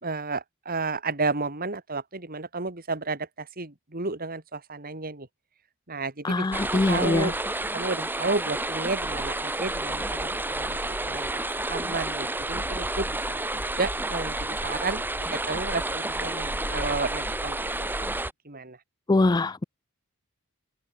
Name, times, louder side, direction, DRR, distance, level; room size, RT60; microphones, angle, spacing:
voice 1, 0.0-5.3 5.9-6.5 6.7-7.4 7.7-10.8 11.1-15.0 15.3-18.1 18.4-18.8, right 3 dB, 40° right, 2.7 m, -32 dB
voice 2, 6.2-7.3 19.1-19.6, left 2 dB, 20° left, 0.3 m, -23 dB
sound 1, 6.5-18.3, right 2 dB, 10° right, 2.0 m, -30 dB
open air
head